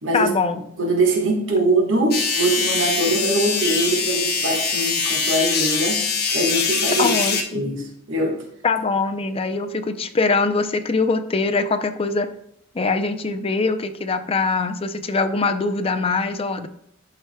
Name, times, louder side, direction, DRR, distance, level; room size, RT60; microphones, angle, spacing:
voice 1, 0.1-0.6 7.0-7.7 8.6-12.3 12.7-16.7, left 4 dB, 30° left, 7 dB, 0.5 m, -22 dB
voice 2, 0.8-6.0 6.3-7.1 7.5-8.4, right 2 dB, 70° right, 0 dB, 1.6 m, -22 dB
sound 1, 2.1-7.4, left 5 dB, 55° left, 1.2 m, -23 dB
12.0 x 4.7 x 2.2 m, 0.75 s
head